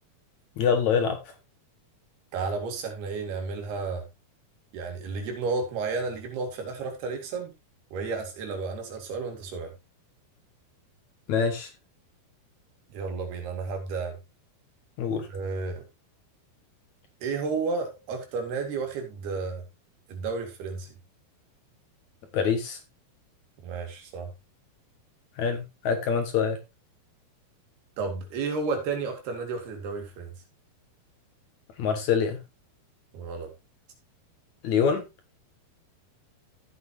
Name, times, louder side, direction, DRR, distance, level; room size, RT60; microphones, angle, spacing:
voice 1, 0.6-1.2 11.3-11.7 15.0-15.3 22.3-22.8 25.4-26.6 31.8-32.4 34.6-35.0, left 6 dB, 60° left, 6 dB, 2.1 m, -25 dB
voice 2, 2.3-4.1 4.7-7.5 7.9-9.7 12.9-14.2 15.3-15.9 17.2-19.6 20.1-20.9 23.6-24.3 28.0-30.3 33.1-33.5, right 4 dB, 80° right, 4 dB, 4.4 m, -32 dB
14.0 x 8.0 x 2.7 m, 0.23 s
omnidirectional pair, 4.5 m